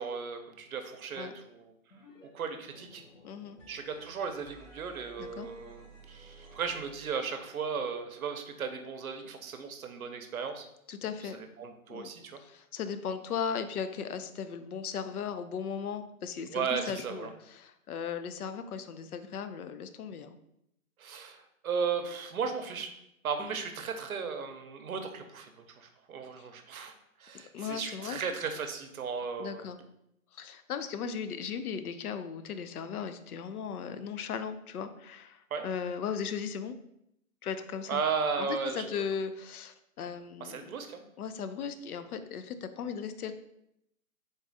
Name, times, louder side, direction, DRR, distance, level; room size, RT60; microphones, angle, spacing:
voice 1, 0.0-1.7 2.3-3.0 3.7-10.7 11.2-12.4 16.5-17.3 21.0-22.9 23.2-26.9 27.2-29.7 35.5-35.7 37.9-39.0 40.4-41.0, right 6 dB, 75° right, 7 dB, 0.7 m, -36 dB
sound 1, 1.9-2.3 2.5-7.5, right 2 dB, 60° left, 1.3 m, -55 dB
voice 2, 3.2-3.6 5.2-5.5 10.9-11.4 11.9-12.1 12.4-20.4 23.4-23.5 27.5-28.2 29.4-29.8 30.3-36.8 37.4-38.0 38.4-40.7 41.2-43.3, left 7 dB, 85° left, 10 dB, 0.6 m, -37 dB
3.8 x 2.4 x 3.9 m, 0.79 s
hypercardioid pair, 180°, 43 cm